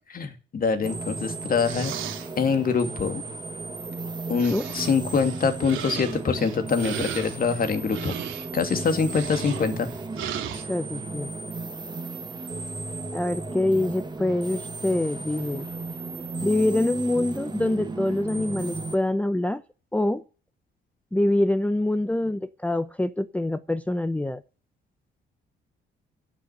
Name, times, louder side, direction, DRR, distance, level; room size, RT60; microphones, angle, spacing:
voice 1, 0.1-1.9 2.4-3.2 4.3-8.1 8.5-9.9, left 5 dB, 45° left, 2.5 m, -24 dB
sound 1, 0.8-19.0, right 3 dB, 20° right, 1.5 m, -35 dB
sound 2, 1.6-2.3 3.9-4.0 4.4-10.6, right 10 dB, 85° right, 2.3 m, -36 dB
voice 2, 10.6-11.3 13.1-15.7 16.4-19.6 19.9-20.2 21.1-24.4, left 1 dB, 5° left, 0.7 m, -25 dB
11.5 x 6.8 x 7.9 m
cardioid pair, 90°, 20 cm